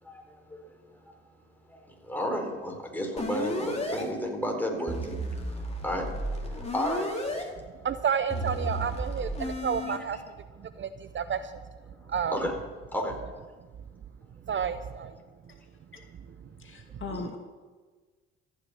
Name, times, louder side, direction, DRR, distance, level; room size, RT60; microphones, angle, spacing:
voice 1, 0.0-0.6 1.0-1.1 1.7-5.1 5.5-6.1 6.4-7.6 10.8-10.9 12.3-12.5 12.9-13.2, equal, 5° left, 1 dB, 4.5 m, -33 dB
sound 1, 3.2-4.0 4.9-7.4 8.3-10.0, equal, 20° left, 3.3 m, -33 dB
voice 2, 7.8-10.2 10.6-11.6 12.1-12.4 14.4-15.2, right 7 dB, 40° right, 12 dB, 0.7 m, -30 dB
voice 3, 16.6-17.4, left 4 dB, 40° left, 3 dB, 2.3 m, -38 dB
14.5 x 6.6 x 9.5 m, 1.4 s
hypercardioid pair, 55°, 30 cm